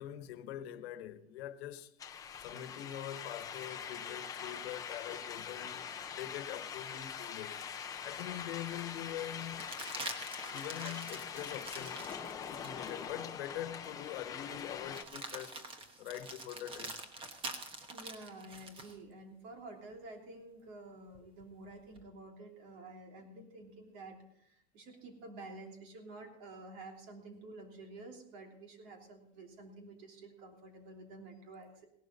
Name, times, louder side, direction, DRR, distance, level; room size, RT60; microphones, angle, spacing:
voice 1, 0.0-1.9 2.4-9.7 10.5-12.1 12.5-15.7 16.0-17.0, left 11 dB, 80° left, 1.1 m, -44 dB
sound 1, 2.0-15.0, left 7 dB, 10° left, 0.5 m, -43 dB
sound 2, 7.9-8.0 9.5-13.0 13.5-13.6 14.9-19.0 21.1-22.0, right 2 dB, 15° right, 1.1 m, -46 dB
voice 2, 17.9-31.8, right 2 dB, 55° right, 3.1 m, -50 dB
17.0 x 12.0 x 4.0 m
supercardioid pair, 175°, 31 cm